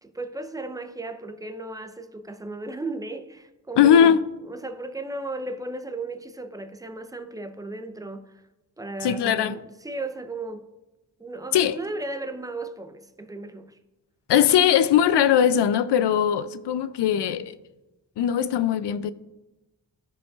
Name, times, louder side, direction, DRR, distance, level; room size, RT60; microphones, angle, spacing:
voice 1, 0.0-4.2 4.4-8.3 8.8-10.7 11.2-13.8, right 2 dB, 10° right, 0.6 m, -35 dB
voice 2, 3.8-4.2 9.0-9.6 11.5-11.8 14.3-17.6 18.2-19.1, left 9 dB, 70° left, 0.5 m, -20 dB
13.5 x 5.1 x 2.4 m
cardioid pair, 55°, 43 cm